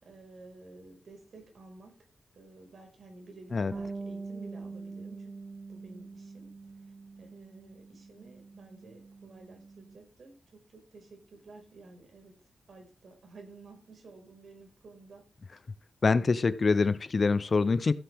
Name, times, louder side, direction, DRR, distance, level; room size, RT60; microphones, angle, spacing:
voice 1, 0.0-1.9 2.3-5.3 5.7-6.5 6.8-6.9 7.2-12.3 12.7-15.3, right 3 dB, 60° right, 3 dB, 5.3 m, -52 dB
Bass guitar, 3.7-10.0, right 3 dB, 20° right, 1.1 m, -44 dB
voice 2, 16.0-17.9, left 4 dB, 40° left, 15 dB, 0.6 m, -25 dB
15.0 x 9.0 x 3.6 m, 0.33 s
wide cardioid pair, 115°, 0 cm